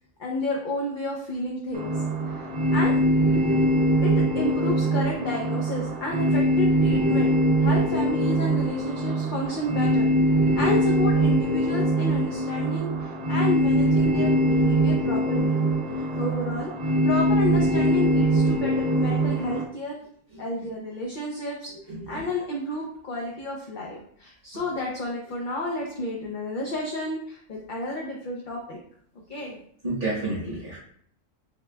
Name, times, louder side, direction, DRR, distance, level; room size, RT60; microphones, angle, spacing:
voice 1, 0.2-1.9 2.2-2.9 4.0-10.2 10.5-15.6 15.9-16.7 17.0-20.0 20.4-21.7 22.1-28.8 29.3-29.6, left 1 dB, 50° left, -2 dB, 0.6 m, -31 dB
sound 1, 1.7-19.6, right 1 dB, 80° right, 0.3 m, -22 dB
voice 2, 20.3-20.7 21.9-22.3 29.8-30.8, right 2 dB, 40° right, -6 dB, 1.2 m, -31 dB
6.6 x 2.2 x 2.2 m, 0.63 s
omnidirectional pair, 1.4 m